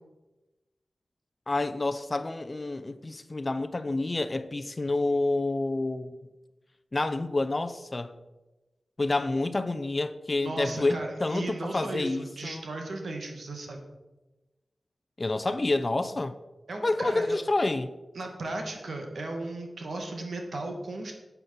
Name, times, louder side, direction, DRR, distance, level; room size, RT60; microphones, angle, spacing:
voice 1, 1.5-6.1 6.9-8.1 9.0-12.6 15.2-16.3 16.8-17.9, left 2 dB, 30° left, 0.7 m, -28 dB
voice 2, 10.3-13.8 16.7-17.4 18.2-21.1, right 2 dB, 70° right, 2.2 m, -36 dB
9.8 x 8.3 x 7.2 m
wide cardioid pair, 110°, 0 cm